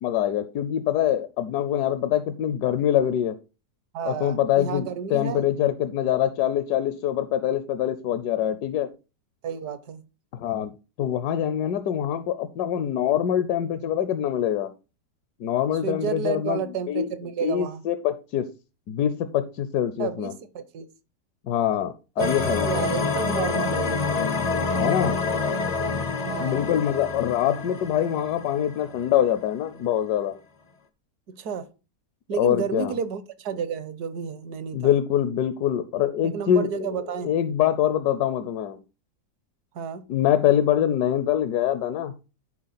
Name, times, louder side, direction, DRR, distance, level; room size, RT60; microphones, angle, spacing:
voice 1, 0.0-3.4 4.1-8.9 10.3-10.7 11.0-14.7 15.4-17.1 17.4-18.5 18.9-20.3 21.4-22.9 24.7-25.2 26.4-30.4 32.4-32.9 34.7-38.8 40.1-42.2, left 10 dB, 75° left, 11 dB, 1.1 m, -24 dB
voice 2, 3.9-5.5 9.4-10.0 15.8-17.8 20.0-20.9 22.2-22.3 22.7-24.2 26.2-26.7 31.3-31.7 32.3-34.9 36.2-37.3 39.7-40.0, right 7 dB, 70° right, 13 dB, 1.3 m, -31 dB
sound 1, 22.2-29.3, left 4 dB, 60° left, 0.4 m, -27 dB
10.5 x 4.3 x 4.1 m, 0.31 s
omnidirectional pair, 1.9 m